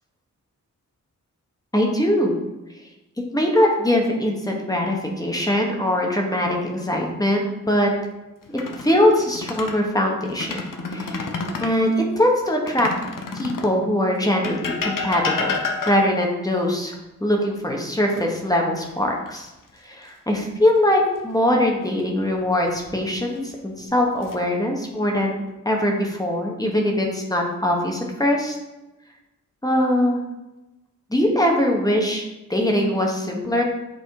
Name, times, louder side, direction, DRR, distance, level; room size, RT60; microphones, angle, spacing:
voice 1, 1.7-2.4 3.3-7.9 8.5-10.6 10.9-11.2 11.6-12.9 13.3-15.6 15.9-19.5 19.8-28.6 29.6-30.2 31.1-33.6, left 1 dB, 10° left, 0 dB, 1.2 m, -22 dB
sound 1, 8.4-9.8 10.3-11.8 12.7-13.8 14.4-16.3 18.2-18.9 19.3-19.5 22.4-23.0 23.7-24.4, left 4 dB, 80° left, 0.9 m, -30 dB
8.1 x 4.2 x 4.8 m, 1.0 s
wide cardioid pair, 155°, 32 cm